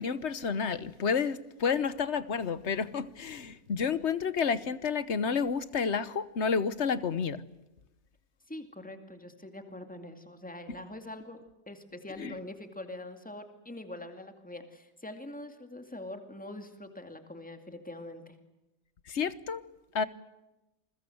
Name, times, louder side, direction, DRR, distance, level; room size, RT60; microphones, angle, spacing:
voice 1, 0.0-7.4 12.2-12.4 19.1-19.6 19.9-20.0, left 6 dB, 55° left, 15 dB, 1.3 m, -30 dB
voice 2, 8.5-11.4 11.7-18.3, left 1 dB, 5° left, 7 dB, 2.4 m, -44 dB
28.0 x 22.0 x 7.9 m, 0.97 s
omnidirectional pair, 1.5 m